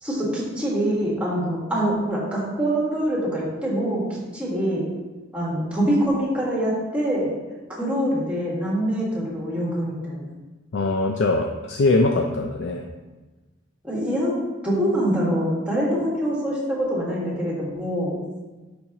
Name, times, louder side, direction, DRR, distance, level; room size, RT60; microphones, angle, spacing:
voice 1, 0.0-4.8 5.3-7.3 7.8-10.3 13.8-14.4 14.6-18.2, equal, 5° right, -5 dB, 1.7 m, -24 dB
voice 2, 10.7-12.8, left 2 dB, 65° left, 2 dB, 0.5 m, -22 dB
10.0 x 4.3 x 2.9 m, 1.2 s
head